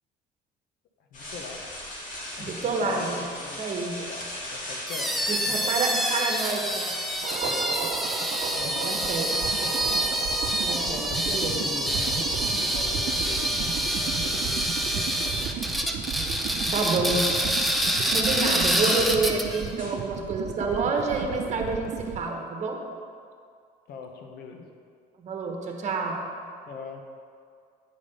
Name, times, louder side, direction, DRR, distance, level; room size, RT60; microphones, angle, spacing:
voice 1, 1.1-1.7 2.4-3.6 4.0-5.8 7.4-7.7 8.5-9.5 10.7-15.6 23.9-24.7 26.7-27.0, left 5 dB, 75° left, 3 dB, 1.1 m, -42 dB
sound 1, 1.1-11.0 11.8-15.6 15.9-20.5, left 1 dB, 50° left, 2.2 m, -42 dB
voice 2, 2.4-3.2 3.6-3.9 5.3-6.9 8.9-9.3 10.7-11.6 16.7-17.4 17.7-22.8 25.2-26.2, right 3 dB, 45° right, 2 dB, 1.3 m, -28 dB
sound 2, 4.9-19.7, equal, ahead, 0.6 m, -27 dB
sound 3, 7.2-22.2, right 7 dB, 60° right, 0.7 m, -34 dB
9.4 x 5.2 x 5.5 m, 2.2 s
cardioid pair, 110°, 17 cm